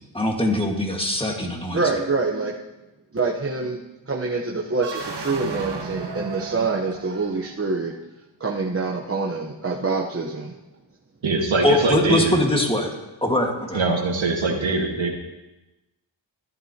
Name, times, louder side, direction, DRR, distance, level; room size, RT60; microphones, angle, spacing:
voice 1, 0.1-1.8 11.6-12.9 13.2-13.8, left 1 dB, 10° left, 0 dB, 1.8 m, -22 dB
voice 2, 1.7-2.5 3.1-3.8 4.1-7.9 8.4-10.5, right 3 dB, 30° right, -3 dB, 1.0 m, -25 dB
sound 1, 4.7-7.7, right 4 dB, 60° right, 1.3 m, -34 dB
voice 3, 11.2-12.4 13.7-15.2, right 3 dB, 75° right, 1 dB, 1.8 m, -22 dB
13.5 x 11.0 x 2.9 m, 1.0 s
wide cardioid pair, 80°, 46 cm